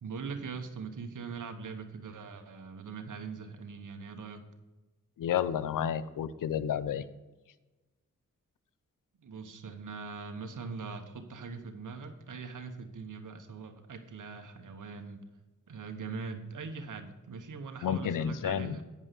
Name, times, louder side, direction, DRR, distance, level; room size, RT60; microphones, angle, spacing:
voice 1, 0.0-4.4 9.2-15.2 15.7-18.8, right 5 dB, 75° right, 7 dB, 1.2 m, -41 dB
voice 2, 5.2-7.0 17.8-18.8, left 9 dB, 85° left, 15 dB, 0.6 m, -31 dB
9.4 x 5.5 x 6.8 m, 1.1 s
cardioid pair, 45°, 31 cm